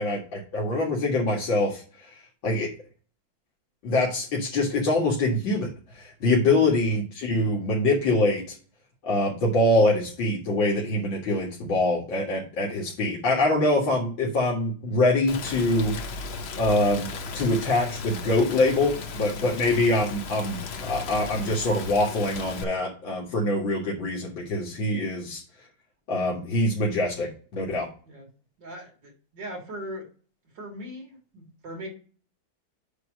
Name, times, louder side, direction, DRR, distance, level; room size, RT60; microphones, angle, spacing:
voice 1, 0.0-1.8 2.4-2.7 3.8-5.7 6.0-8.6 9.0-16.0 16.6-17.1 17.3-25.4 26.1-27.9, left 2 dB, 85° left, -4 dB, 2.7 m, -24 dB
Rain, 15.3-22.6, left 4 dB, 55° left, 0.7 m, -36 dB
voice 2, 28.6-30.1 30.5-31.9, equal, 70° right, -1 dB, 3.6 m, -39 dB
8.3 x 3.1 x 6.2 m, 0.39 s
omnidirectional pair, 2.0 m